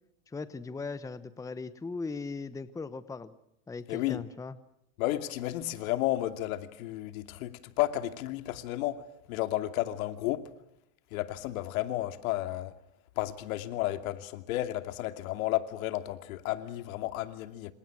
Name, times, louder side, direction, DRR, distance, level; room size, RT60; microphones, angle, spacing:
voice 1, 0.3-3.3 3.7-4.6, left 4 dB, 10° left, 1.0 m, -38 dB
voice 2, 3.9-4.2 5.0-9.0 9.3-10.5 11.1-12.7 13.2-17.7, left 15 dB, 75° left, 2.7 m, -32 dB
28.0 x 27.5 x 6.2 m
supercardioid pair, 145°, 42 cm